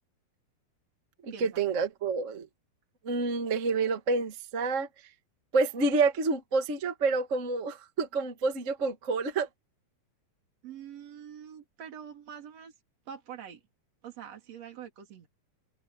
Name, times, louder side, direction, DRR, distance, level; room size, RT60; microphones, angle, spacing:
voice 1, 1.2-2.5 3.0-4.9 5.5-9.5, right 4 dB, 65° right, 0.7 m, -28 dB
voice 2, 10.6-12.7 13.1-13.6 14.0-15.3, right 8 dB, 45° right, 3.9 m, -45 dB
omnidirectional pair, 4.6 m